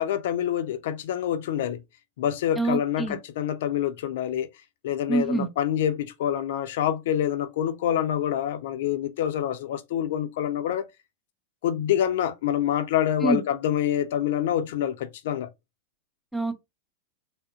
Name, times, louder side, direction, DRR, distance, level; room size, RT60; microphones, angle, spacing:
voice 1, 0.0-1.8 2.2-4.5 4.8-10.9 11.6-15.5, left 10 dB, 55° left, 0.5 m, -26 dB
voice 2, 2.6-3.2 5.1-5.5 13.2-13.4 16.3-16.6, right 2 dB, ahead, 0.6 m, -25 dB
3.6 x 2.2 x 3.6 m
figure-of-eight pair, 90°, 0 cm